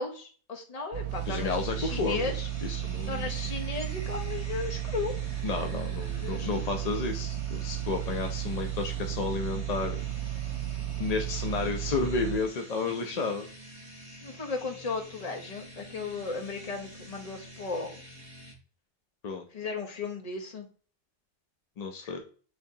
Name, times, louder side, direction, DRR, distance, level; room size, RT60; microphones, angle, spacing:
voice 1, 0.0-2.5 3.1-5.1 6.2-6.7 10.8-10.9 14.2-18.0 19.5-20.7 22.0-22.2, left 4 dB, 40° left, 2 dB, 0.8 m, -35 dB
sound 1, 0.9-12.4, right 13 dB, 75° right, 0.9 m, -34 dB
sound 2, 1.1-18.5, equal, 40° right, 1.5 m, -48 dB
voice 2, 1.3-2.3 2.6-3.4 5.4-10.0 11.0-13.5 19.2-19.5 21.8-22.2, left 4 dB, 55° left, 4 dB, 0.4 m, -32 dB
6.7 x 2.7 x 2.6 m, 0.40 s
omnidirectional pair, 1.2 m